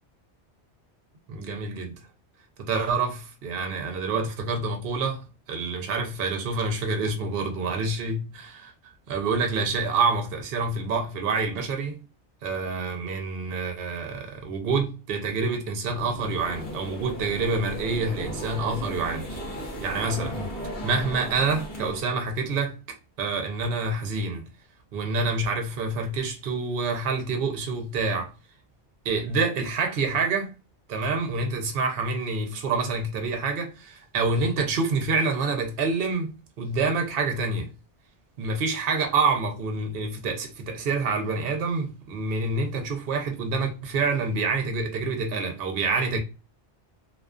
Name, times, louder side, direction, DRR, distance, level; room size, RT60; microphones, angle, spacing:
voice 1, 1.3-1.9 2.6-8.7 9.1-12.0 12.4-19.3 19.5-20.4 20.8-22.8 23.2-24.5 24.9-28.3 29.0-30.5 30.9-37.7 38.4-46.2, right 4 dB, 60° right, 0.8 m, -27 dB
sound 1, 16.0-22.0, equal, 60° left, 1.0 m, -36 dB
2.4 x 2.3 x 2.2 m
omnidirectional pair, 1.2 m